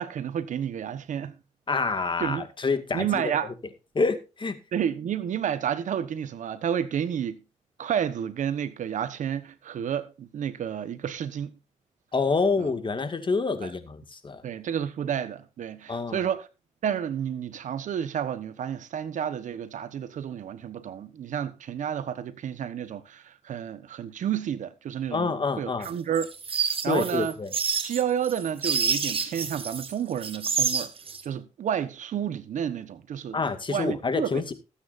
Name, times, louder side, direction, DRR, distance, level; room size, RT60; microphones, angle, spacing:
voice 1, 0.0-1.4 2.2-2.5 2.9-3.5 4.7-7.4 7.8-11.6 12.6-12.7 13.6-13.7 14.4-16.5 16.8-26.3 26.5-27.3 27.8-30.9 31.2-33.4 33.7-34.4, right 9 dB, 75° right, 1.2 m, -30 dB
voice 2, 1.7-3.3 3.9-4.6 12.1-14.4 15.9-16.3 25.1-25.9 26.9-27.5 33.3-34.5, left 4 dB, 40° left, 2.1 m, -27 dB
sound 1, 25.8-29.9 30.2-31.2, right 6 dB, 45° right, 1.7 m, -28 dB
20.5 x 8.7 x 2.6 m
cardioid pair, 75°, 13 cm